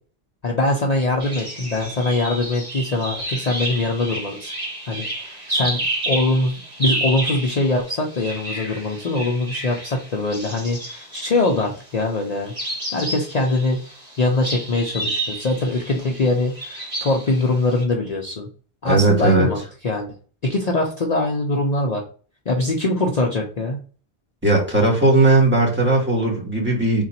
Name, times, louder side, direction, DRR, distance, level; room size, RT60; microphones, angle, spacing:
voice 1, 0.4-4.5 4.9-12.5 12.9-13.8 14.2-18.5 18.8-20.1 20.4-22.0 22.5-23.8, left 2 dB, 45° left, 0 dB, 0.7 m, -22 dB
sound 1, 1.2-11.8 12.4-17.8, right 1 dB, 35° right, 2.0 m, -30 dB
voice 2, 18.8-19.5 24.4-27.0, right 2 dB, 10° right, -2 dB, 1.6 m, -17 dB
3.8 x 2.5 x 4.2 m, 0.39 s
omnidirectional pair, 1.1 m